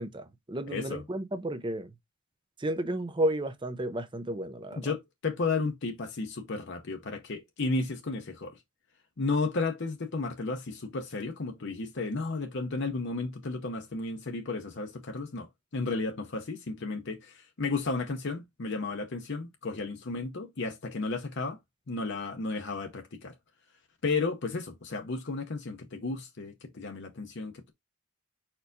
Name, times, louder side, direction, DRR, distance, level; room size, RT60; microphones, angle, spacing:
voice 1, 0.0-1.9 2.6-4.9, right 1 dB, 20° right, 0.6 m, -32 dB
voice 2, 0.7-1.0 4.7-8.6 9.2-15.5 15.7-21.6 21.9-23.3 24.0-27.7, left 3 dB, 55° left, 0.7 m, -33 dB
4.7 x 4.4 x 2.6 m
head